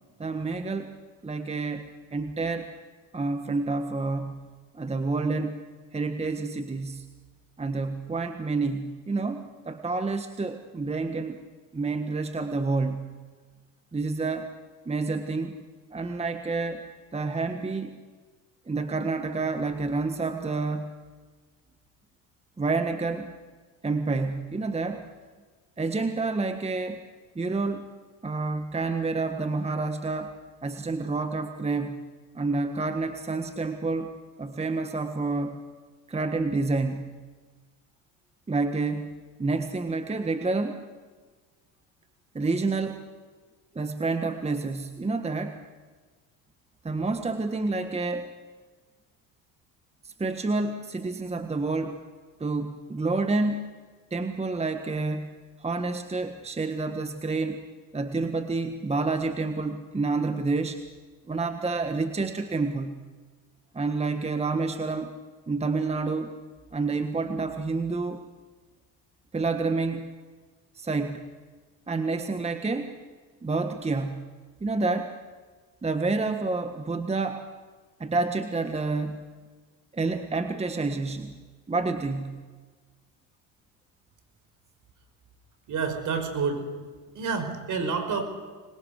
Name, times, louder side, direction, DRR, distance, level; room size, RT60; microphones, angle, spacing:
voice 1, 0.2-2.7 3.1-4.5 4.7-5.6 5.9-7.1 7.6-11.4 11.7-13.1 13.9-14.5 14.8-15.6 15.9-18.0 18.7-20.9 22.6-23.3 23.8-25.1 25.8-27.0 27.3-27.9 28.2-30.3 30.6-32.0 32.3-35.6 36.1-37.1 38.5-40.9 42.3-43.1 43.7-45.6 46.8-48.3 50.0-52.0 52.4-53.6 54.1-55.3 55.6-57.6 57.9-60.8 61.3-63.0 63.7-65.1 65.5-66.3 66.7-68.2 69.3-70.1 70.7-71.2 71.9-73.0 73.4-74.3 74.6-75.2 75.8-77.5 78.0-79.2 79.9-81.4 81.7-82.5, right 3 dB, 15° right, 8 dB, 1.5 m, -29 dB
voice 2, 85.7-86.9 87.1-88.2, right 5 dB, 50° right, 8 dB, 5.1 m, -29 dB
26.0 x 21.5 x 6.6 m, 1.4 s
supercardioid pair, 80°, 38 cm